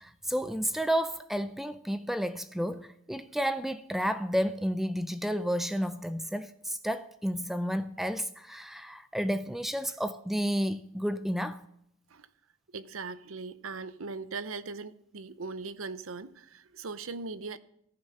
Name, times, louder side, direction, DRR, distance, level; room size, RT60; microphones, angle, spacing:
voice 1, 0.0-11.7, equal, ahead, 0.4 m, -31 dB
voice 2, 12.7-17.6, right 4 dB, 75° right, 0.8 m, -39 dB
15.0 x 10.5 x 5.7 m
head